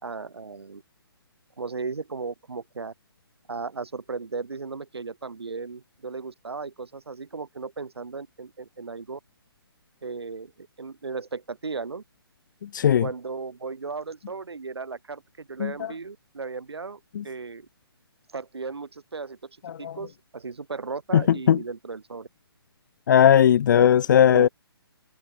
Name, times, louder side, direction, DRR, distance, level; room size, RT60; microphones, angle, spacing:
voice 1, 0.0-0.8 1.6-2.9 3.5-9.2 10.0-12.0 13.0-17.7 18.3-22.3 23.7-23.9 24.3-24.5, right 4 dB, 80° right, 5.0 m, -36 dB
voice 2, 12.7-13.0 15.6-15.7 17.2-17.3 19.8-19.9 21.1-21.2 21.5-21.6 23.1-24.5, left 9 dB, 50° left, 0.6 m, -17 dB
hypercardioid pair, 145°, 13 cm